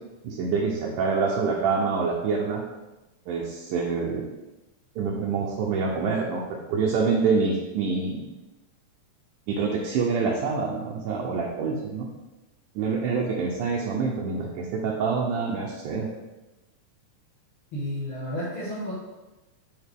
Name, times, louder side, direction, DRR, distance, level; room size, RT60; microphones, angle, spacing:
voice 1, 0.2-2.6 3.3-4.3 5.0-8.3 9.5-12.1 12.8-16.1, right 5 dB, 75° right, -2 dB, 2.0 m, -26 dB
voice 2, 17.7-18.9, equal, 50° left, -8 dB, 1.9 m, -31 dB
8.1 x 3.7 x 3.5 m, 1.1 s
omnidirectional pair, 4.0 m